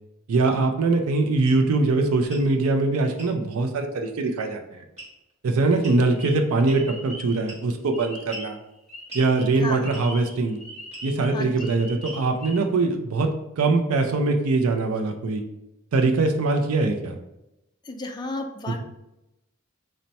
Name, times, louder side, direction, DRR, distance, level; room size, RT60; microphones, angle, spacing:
voice 1, 0.3-4.8 5.4-8.6 9.1-10.6 11.0-13.3 13.6-15.4 15.9-17.2 18.7-18.8, right 3 dB, 80° right, 4 dB, 0.4 m, -22 dB
sound 1, 1.4-1.6 2.2-2.5 3.2-3.4 5.0-5.3 5.8-6.0 6.7-7.0 7.5-7.8 8.3-8.5 9.1-9.3 9.9-10.2 10.9-11.1 12.0-12.4, right 1 dB, 35° right, 1.3 m, -42 dB
sound 2, 6.1-8.6 8.9-12.6, right 1 dB, ahead, 0.8 m, -41 dB
voice 2, 11.3-11.7 17.9-18.8, left 2 dB, 20° left, 3 dB, 0.3 m, -33 dB
4.0 x 2.1 x 4.2 m, 0.90 s
head